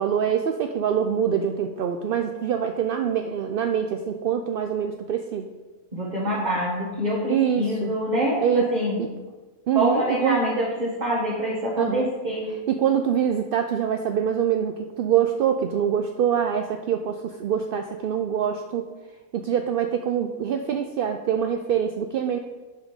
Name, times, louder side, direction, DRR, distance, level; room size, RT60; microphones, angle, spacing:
voice 1, 0.0-5.5 7.3-7.9 8.4-8.7 9.0-9.1 9.7-10.4 11.8-12.1 12.7-18.9 19.3-22.4, right 8 dB, 65° right, 5 dB, 0.5 m, -24 dB
voice 2, 5.9-9.1 9.7-12.5, equal, 35° right, -5 dB, 1.5 m, -25 dB
10.5 x 5.2 x 5.1 m, 1.2 s
omnidirectional pair, 1.4 m